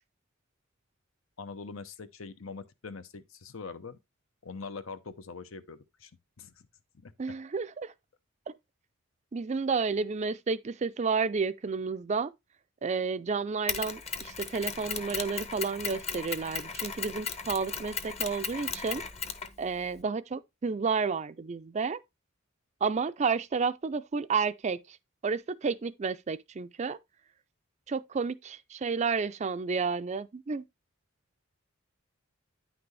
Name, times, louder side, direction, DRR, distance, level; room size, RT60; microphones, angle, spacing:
voice 1, 1.4-4.0 4.4-6.1 6.4-6.7 6.9-7.3, left 4 dB, 75° left, 0.8 m, -43 dB
voice 2, 7.2-7.9 9.3-12.3 12.8-19.0 19.6-22.0 22.8-24.8 25.2-27.0 27.9-30.6, right 5 dB, 35° right, 0.4 m, -31 dB
Mechanisms, 13.7-20.0, left 6 dB, 30° left, 0.9 m, -36 dB
9.7 x 6.0 x 3.2 m
head